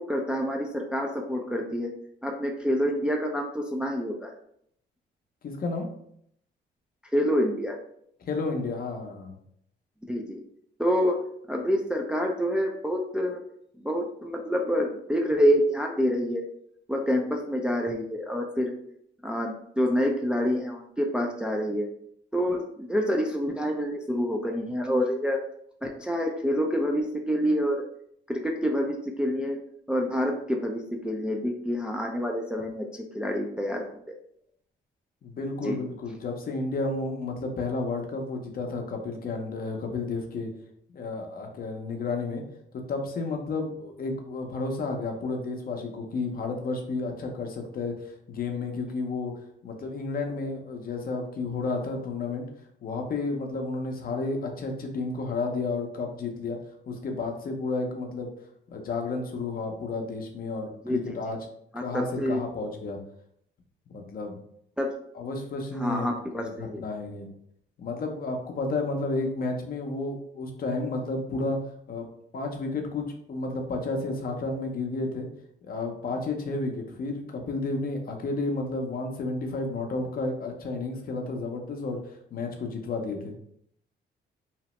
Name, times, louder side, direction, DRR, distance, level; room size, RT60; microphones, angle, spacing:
voice 1, 0.0-1.9 2.2-4.3 7.1-7.7 10.1-10.4 10.8-11.1 11.5-13.4 13.8-16.4 16.9-18.7 19.2-21.9 22.3-25.4 25.8-27.8 28.3-29.6 29.9-32.9 33.1-34.1 35.6-35.8 60.9-61.0 61.7-62.4 64.8-64.9 65.8-66.8, equal, 5° right, 1 dB, 0.3 m, -27 dB
voice 2, 5.4-5.9 8.2-9.4 35.2-40.5 40.9-42.4 42.9-49.3 49.6-52.5 52.8-56.6 56.9-58.3 58.7-61.4 61.8-63.0 63.9-64.4 65.1-67.3 67.8-71.6 71.9-72.1 72.3-75.3 75.6-83.3, left 3 dB, 45° left, 3 dB, 0.6 m, -32 dB
2.8 x 2.0 x 2.9 m, 0.70 s
cardioid pair, 90°, 20 cm